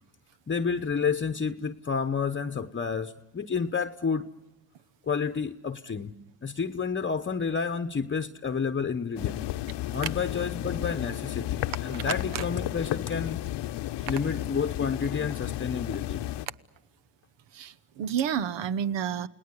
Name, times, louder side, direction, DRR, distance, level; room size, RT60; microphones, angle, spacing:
voice 1, 0.5-4.3 5.1-6.1 6.4-9.4 9.9-13.5 14.1-16.2, left 6 dB, 25° left, 0.9 m, -30 dB
sound 1, 9.2-16.5, left 15 dB, 75° left, 0.9 m, -33 dB
voice 2, 17.5-19.3, right 8 dB, 80° right, 1.1 m, -30 dB
29.0 x 19.0 x 9.7 m
cardioid pair, 80°, 43 cm